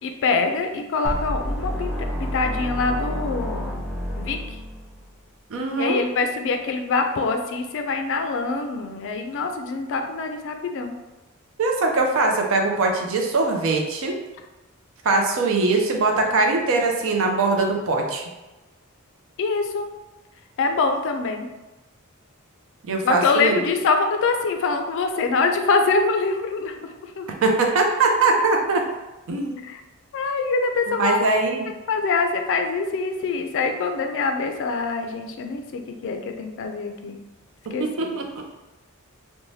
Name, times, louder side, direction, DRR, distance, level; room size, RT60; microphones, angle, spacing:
voice 1, 0.0-1.9 2.2-3.8 4.2-4.6 5.7-10.9 19.4-19.9 20.6-21.5 23.0-26.7 27.0-27.3 29.6-29.8 30.1-31.2 31.9-37.2 37.7-38.2, left 4 dB, 60° left, 5 dB, 0.3 m, -24 dB
sound 1, 1.0-5.1, equal, ahead, 0.6 m, -29 dB
voice 2, 5.5-6.0 11.6-14.1 15.0-18.2 22.9-23.6 27.4-28.8 29.3-29.6 30.9-31.7 37.7-38.4, right 3 dB, 65° right, 2 dB, 0.5 m, -21 dB
2.7 x 2.1 x 3.1 m, 1.1 s
head